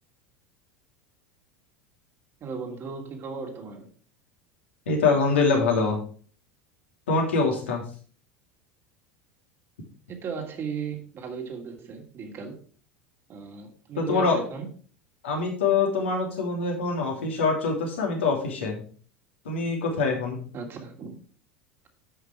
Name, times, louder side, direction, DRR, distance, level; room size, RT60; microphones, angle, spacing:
voice 1, 2.4-3.9 10.1-12.6 13.3-14.7 17.1-17.4 20.5-21.2, right 5 dB, 40° right, 2 dB, 2.6 m, -36 dB
voice 2, 4.9-6.0 7.1-7.8 14.0-14.4 15.2-18.8 19.4-20.4, left 4 dB, 75° left, 0 dB, 3.1 m, -24 dB
11.0 x 6.0 x 4.6 m, 0.43 s
hypercardioid pair, 80°, 6 cm